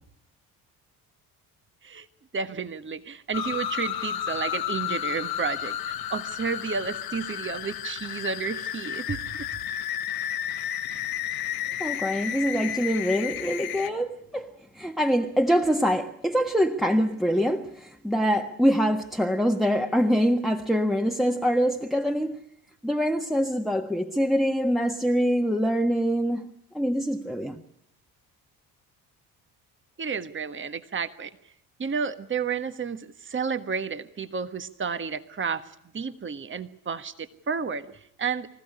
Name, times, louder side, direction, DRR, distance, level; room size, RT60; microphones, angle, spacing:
voice 1, 2.3-9.5 30.0-31.3 31.8-35.6 35.9-38.5, right 6 dB, 25° right, 1.5 m, -31 dB
sound 1, 3.3-13.9, left 11 dB, 55° left, 1.4 m, -32 dB
voice 2, 11.8-22.4 22.8-27.6, equal, ahead, 1.5 m, -24 dB
25.5 x 15.5 x 9.8 m
hypercardioid pair, 55°, 44 cm